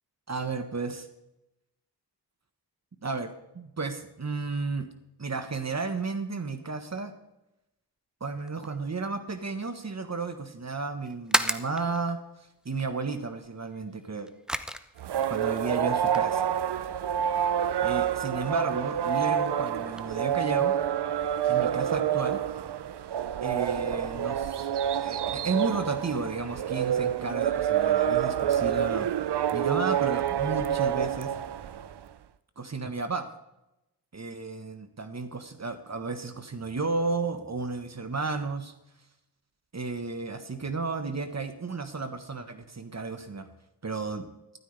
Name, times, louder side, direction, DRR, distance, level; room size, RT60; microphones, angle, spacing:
voice 1, 0.3-0.9 3.0-3.3 3.5-4.9 5.2-7.1 8.2-12.2 12.6-14.3 15.3-16.5 17.8-20.7 21.5-22.4 23.4-29.1 29.5-31.3 32.6-33.3 34.1-38.7 39.7-43.5 43.8-44.3, right 4 dB, 40° right, 8 dB, 1.3 m, -33 dB
sound 1, 8.3-20.1, equal, ahead, 0.8 m, -38 dB
sound 2, 15.0-32.0, right 9 dB, 70° right, 0.7 m, -28 dB
13.5 x 12.5 x 3.4 m, 0.90 s
cardioid pair, 55°, 42 cm